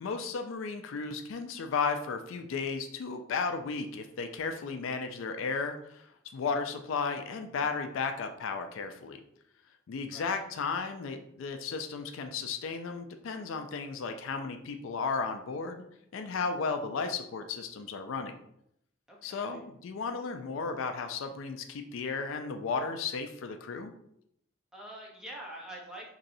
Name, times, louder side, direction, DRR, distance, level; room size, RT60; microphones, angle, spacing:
voice 1, 0.0-6.1 6.3-9.2 9.9-15.9 16.1-18.4 19.2-23.9, left 5 dB, 70° left, 6 dB, 0.4 m, -34 dB
voice 2, 19.1-19.6 24.7-26.1, right 1 dB, 5° right, -3 dB, 0.8 m, -45 dB
3.9 x 3.0 x 2.7 m, 0.75 s
head